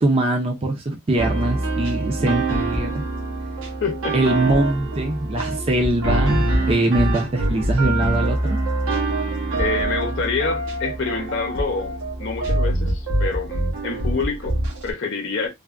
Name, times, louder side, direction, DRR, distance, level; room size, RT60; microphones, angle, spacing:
voice 1, 0.0-3.0 4.1-8.6, right 1 dB, 30° right, 0.4 m, -22 dB
sound 1, 1.2-14.9, right 2 dB, 85° right, 1.0 m, -24 dB
voice 2, 3.8-4.2 9.6-15.5, left 4 dB, 60° left, 0.6 m, -27 dB
3.4 x 2.1 x 2.4 m
head